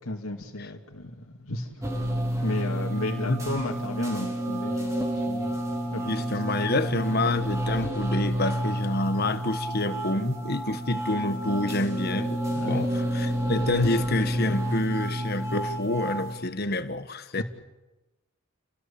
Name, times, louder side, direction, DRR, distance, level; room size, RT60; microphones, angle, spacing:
voice 1, 0.1-2.0 2.4-6.3 12.5-12.9 17.3-17.4, left 1 dB, 90° left, 2.6 m, -34 dB
sound 1, 1.8-16.4, equal, 15° right, 4.7 m, -29 dB
voice 2, 6.1-17.4, left 2 dB, 50° left, 1.4 m, -28 dB
30.0 x 18.5 x 8.7 m
head